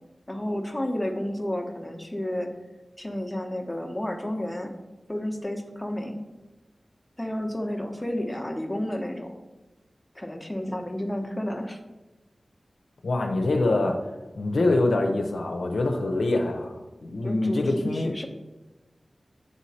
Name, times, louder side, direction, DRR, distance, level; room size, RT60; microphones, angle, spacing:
voice 1, 0.3-2.5 3.0-4.8 5.1-6.2 7.2-9.4 10.1-11.8 17.2-18.3, left 1 dB, 15° left, 3 dB, 0.9 m, -31 dB
voice 2, 13.0-14.0 14.4-18.1, left 2 dB, 85° left, 2 dB, 0.6 m, -25 dB
8.2 x 3.1 x 4.2 m, 1.1 s
cardioid pair, 40°, 0 cm